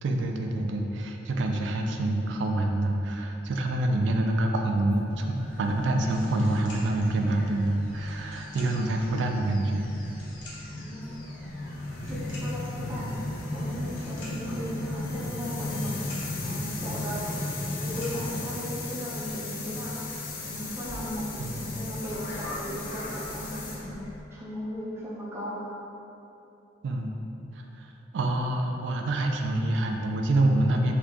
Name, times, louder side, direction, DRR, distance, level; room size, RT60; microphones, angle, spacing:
voice 1, 0.0-9.9 12.2-12.3 21.4-21.7 26.8-27.1 27.8-30.9, right 1 dB, 70° right, 3 dB, 0.3 m, -26 dB
sound 1, 4.7-24.2, left 2 dB, 50° left, 0.4 m, -36 dB
sound 2, 5.1-19.3, left 1 dB, 70° left, 0.8 m, -49 dB
voice 2, 10.7-11.2 12.0-16.0 16.4-17.4 17.8-25.7, equal, 15° right, -7 dB, 0.5 m, -37 dB
2.8 x 2.4 x 3.5 m, 2.9 s
head